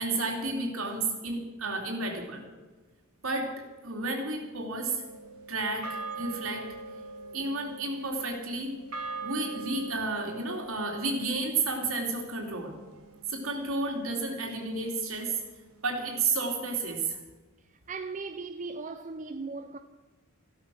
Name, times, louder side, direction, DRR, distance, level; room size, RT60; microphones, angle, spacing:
voice 1, 0.0-2.4 3.2-3.5 3.8-5.0 5.5-6.7 7.3-8.7 9.2-12.7 13.3-15.4 15.8-17.2, right 3 dB, 70° right, 3.1 m, -31 dB
sound 1, 5.0-13.4, right 3 dB, 90° right, 1.9 m, -42 dB
voice 2, 17.6-19.8, right 4 dB, 35° right, 0.6 m, -38 dB
15.0 x 13.0 x 6.3 m
head